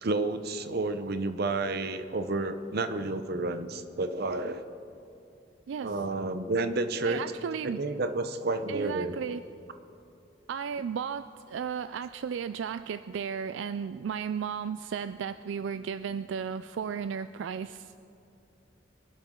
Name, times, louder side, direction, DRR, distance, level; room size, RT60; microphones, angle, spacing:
voice 1, 0.0-4.6 5.8-7.2 7.6-9.2, right 2 dB, 60° right, 10 dB, 0.8 m, -30 dB
voice 2, 5.7-6.0 7.0-7.8 8.7-9.4 10.5-17.9, right 7 dB, 80° right, 12 dB, 0.3 m, -34 dB
24.5 x 11.5 x 3.8 m, 2.6 s
head